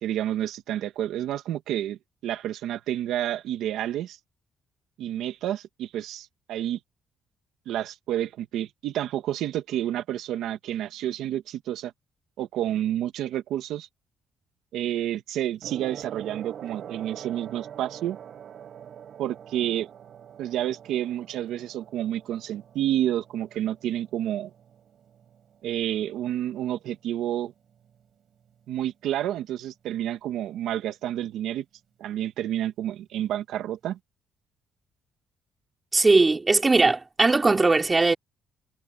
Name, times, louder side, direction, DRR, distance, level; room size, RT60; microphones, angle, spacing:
voice 1, 0.0-4.2 5.0-6.8 7.7-11.9 12.4-13.9 14.7-18.2 19.2-19.9 20.4-24.5 25.6-27.5 28.7-31.6 32.0-34.0, right 12 dB, 85° right, 2.2 m, -29 dB
Gong, 15.6-25.4 26.3-26.6, right 9 dB, 60° right, 7.3 m, -44 dB
voice 2, 35.9-38.2, right 3 dB, 25° right, 4.1 m, -19 dB
cardioid pair, 90°, 0 cm